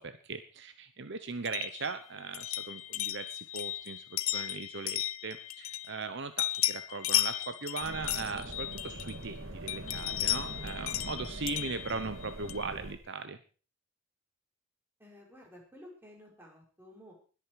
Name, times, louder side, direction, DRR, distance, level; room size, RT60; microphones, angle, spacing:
voice 1, 0.0-13.4, right 4 dB, 60° right, 10 dB, 1.0 m, -39 dB
sound 1, 1.4-6.1 6.4-9.3 9.7-12.7, left 15 dB, 80° left, 0.7 m, -35 dB
sound 2, 7.8-13.0, right 1 dB, 80° right, 2.4 m, -43 dB
voice 2, 15.0-17.1, left 1 dB, 10° right, -1 dB, 5.2 m, -53 dB
21.0 x 8.7 x 4.8 m, 0.37 s
head